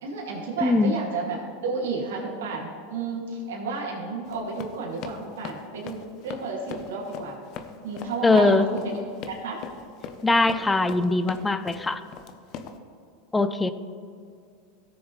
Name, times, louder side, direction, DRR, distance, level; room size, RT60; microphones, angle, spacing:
voice 1, 0.0-1.4 1.6-7.4 7.8-9.0 9.3-9.6, right 4 dB, 85° right, -3 dB, 2.4 m, -32 dB
voice 2, 0.6-0.9 8.2-8.7 10.2-12.0 13.3-13.7, left 3 dB, 10° left, 11 dB, 0.5 m, -21 dB
Run, 4.2-12.8, left 6 dB, 50° left, 0.8 m, -40 dB
16.5 x 7.0 x 3.2 m, 2.3 s
supercardioid pair, 120°, 0 cm